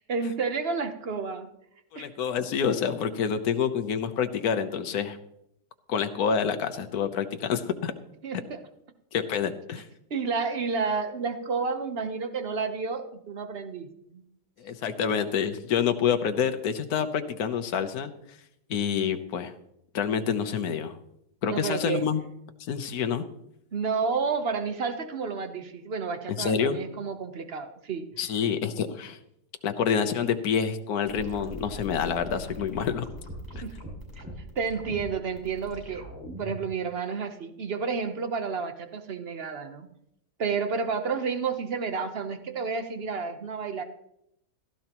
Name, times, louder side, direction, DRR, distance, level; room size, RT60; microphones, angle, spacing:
voice 1, 0.1-1.5 1.9-2.1 8.2-8.6 10.1-14.2 21.5-22.0 23.7-28.1 33.6-33.8 34.2-34.3 34.6-39.9 40.4-43.8, right 5 dB, 45° right, 7 dB, 1.1 m, -31 dB
voice 2, 1.9-5.2 5.9-7.9 9.1-9.8 14.6-18.1 18.7-19.5 19.9-21.0 21.4-22.2 22.7-23.2 26.4-26.8 28.2-29.2 29.6-33.0, left 7 dB, 70° left, 8 dB, 1.4 m, -27 dB
sound 1, 31.1-36.7, equal, 10° right, 6.4 m, -40 dB
16.0 x 13.0 x 3.0 m, 0.78 s
omnidirectional pair, 1.7 m